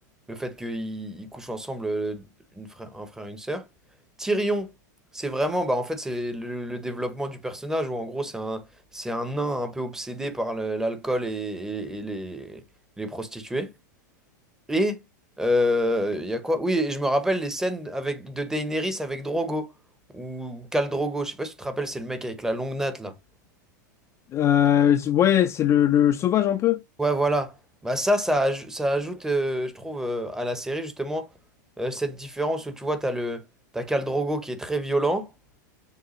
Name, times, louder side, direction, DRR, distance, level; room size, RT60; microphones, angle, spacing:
voice 1, 0.3-2.2 2.6-3.7 4.2-4.7 5.1-8.6 8.9-12.6 13.0-13.7 14.7-15.0 15.4-19.7 20.1-23.1 27.0-27.6 27.8-31.3 31.8-33.4 33.7-35.3, right 1 dB, 5° right, 0.7 m, -27 dB
voice 2, 24.3-26.8, left 10 dB, 30° left, 0.3 m, -20 dB
6.5 x 2.2 x 3.0 m
hypercardioid pair, 120°, 10 cm